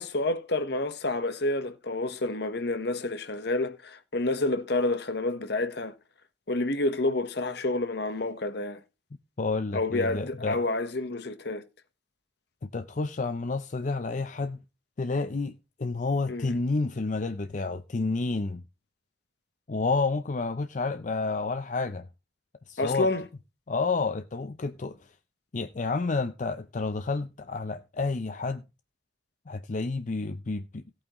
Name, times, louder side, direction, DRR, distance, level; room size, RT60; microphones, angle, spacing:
voice 1, 0.0-5.9 6.5-8.8 9.7-11.6 16.3-16.6 22.8-23.2, left 2 dB, 60° left, 1.2 m, -29 dB
voice 2, 9.4-10.6 12.6-14.6 15.0-18.6 19.7-22.1 22.7-23.1 23.7-25.1 25.5-28.6 29.5-30.8, left 3 dB, 45° left, 0.6 m, -30 dB
17.0 x 8.7 x 3.1 m
head